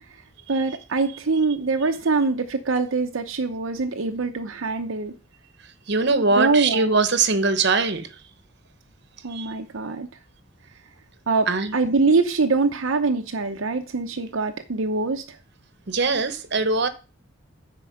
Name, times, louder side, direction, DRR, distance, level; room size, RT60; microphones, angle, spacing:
voice 1, 0.5-5.1 6.4-6.9 9.2-10.1 11.3-15.2, right 3 dB, 80° right, 0.8 m, -23 dB
voice 2, 5.9-8.1 9.3-9.5 11.5-11.7 15.9-16.9, right 3 dB, 55° right, 1.1 m, -21 dB
10.0 x 4.6 x 6.5 m
head